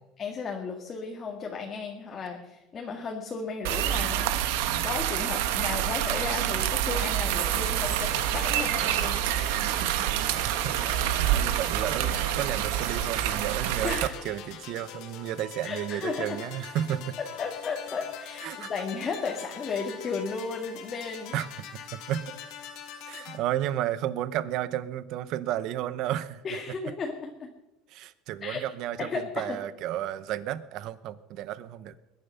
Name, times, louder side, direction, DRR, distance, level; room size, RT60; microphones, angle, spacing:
voice 1, 0.2-9.2 13.8-14.1 15.6-16.4 17.2-21.4 26.4-27.5 28.4-28.6 29.0-29.6, left 5 dB, 25° left, 1 dB, 1.9 m, -34 dB
sound 1, 3.6-14.1, right 12 dB, 85° right, 1.3 m, -27 dB
sound 2, 7.4-23.4, left 8 dB, 60° left, 2.1 m, -43 dB
voice 2, 10.4-10.8 11.1-17.2 18.4-18.7 21.3-21.5 21.9-22.3 23.1-26.4 27.9-32.0, right 12 dB, 55° right, 15 dB, 0.9 m, -32 dB
21.5 x 10.5 x 5.6 m, 0.95 s
cardioid pair, 145°, 0 cm